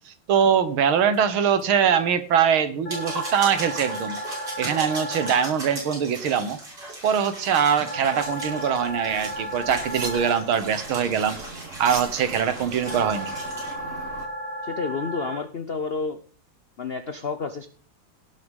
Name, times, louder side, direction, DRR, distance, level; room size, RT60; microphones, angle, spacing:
voice 1, 0.3-4.2 4.6-6.6 7.0-11.4 11.8-13.3, right 7 dB, 80° right, 11 dB, 2.1 m, -22 dB
sound 1, 1.1-1.2 1.6-1.7 2.0-2.1 2.7-13.7, right 1 dB, 55° right, 6.6 m, -38 dB
sound 2, 2.9-5.4 7.9-10.4 12.9-15.4, right 1 dB, 85° left, 4.5 m, -34 dB
sound 3, 8.2-14.3, right 3 dB, 40° right, 2.0 m, -40 dB
voice 2, 14.6-16.2 16.8-17.7, left 4 dB, 65° left, 9 dB, 0.5 m, -30 dB
17.5 x 6.7 x 5.3 m, 0.42 s
omnidirectional pair, 2.2 m